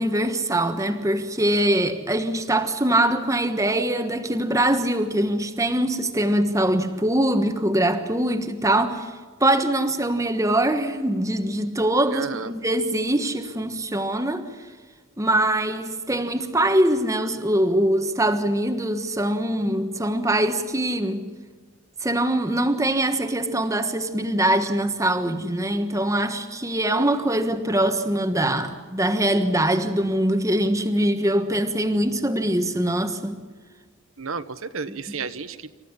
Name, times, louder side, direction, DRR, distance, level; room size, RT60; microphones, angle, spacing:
voice 1, 0.0-9.1 9.4-14.5 15.2-21.2 22.0-33.4, right 1 dB, 15° right, 1.3 m, -23 dB
voice 2, 12.1-12.5 34.2-35.8, right 5 dB, 75° right, 1.0 m, -32 dB
28.0 x 14.5 x 9.8 m
head